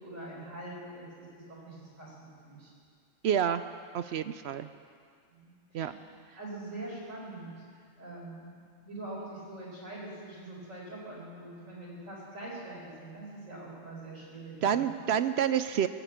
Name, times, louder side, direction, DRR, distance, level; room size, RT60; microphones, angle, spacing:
voice 1, 0.0-2.7 5.3-5.9 6.4-14.9, right 2 dB, 85° right, -4 dB, 4.8 m, -44 dB
voice 2, 3.2-3.6 3.9-4.7 5.7-5.9 14.6-15.9, right 9 dB, 65° right, 12 dB, 0.7 m, -28 dB
19.0 x 8.5 x 8.5 m, 2.1 s
omnidirectional pair, 1.3 m